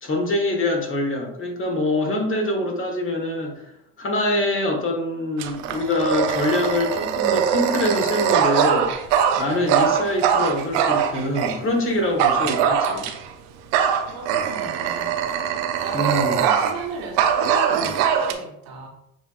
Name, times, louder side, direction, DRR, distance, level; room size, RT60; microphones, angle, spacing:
voice 1, 0.0-3.7 4.0-8.9 9.4-13.1 15.9-16.4, left 1 dB, 35° left, 2 dB, 1.4 m, -24 dB
Dog, 5.4-11.6 12.2-13.3 13.7-16.9 17.2-18.3, right 8 dB, 90° right, 0.6 m, -22 dB
voice 2, 14.1-15.1 15.5-18.9, right 3 dB, 70° right, 0 dB, 1.2 m, -35 dB
7.0 x 2.8 x 2.5 m, 0.77 s
supercardioid pair, 85°, 36 cm